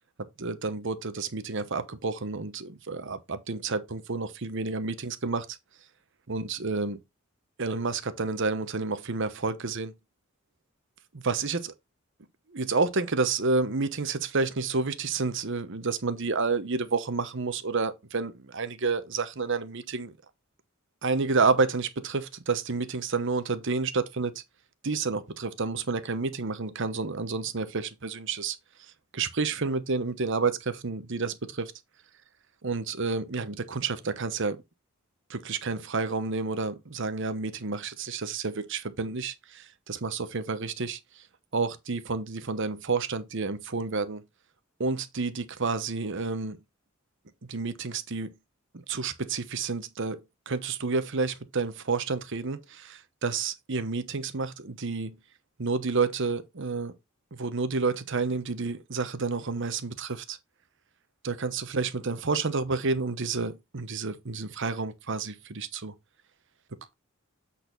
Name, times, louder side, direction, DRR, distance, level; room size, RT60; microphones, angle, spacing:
voice 1, 0.2-5.6 6.3-7.0 7.6-9.9 11.1-11.7 12.5-20.1 21.0-24.4 24.8-28.6 29.1-31.7 32.6-34.6 35.3-41.2 41.5-44.2 44.8-46.6 47.4-48.3 48.7-50.2 50.5-55.2 55.6-56.9 57.3-60.4 61.2-65.9, right 4 dB, 60° right, 1.0 m, -30 dB
8.3 x 4.3 x 3.9 m
head